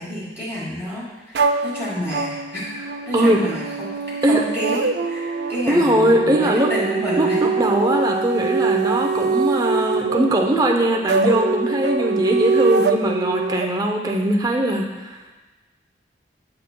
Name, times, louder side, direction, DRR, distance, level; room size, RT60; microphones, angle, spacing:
voice 1, 0.0-2.7 3.1-3.9 4.3-7.4, equal, 15° left, -9 dB, 1.8 m, -29 dB
sound 1, 1.3-13.7, right 4 dB, 65° right, 0.3 m, -24 dB
voice 2, 5.7-6.7 7.2-15.2, right 1 dB, 20° right, 2 dB, 0.6 m, -20 dB
9.0 x 5.7 x 2.2 m, 1.2 s
head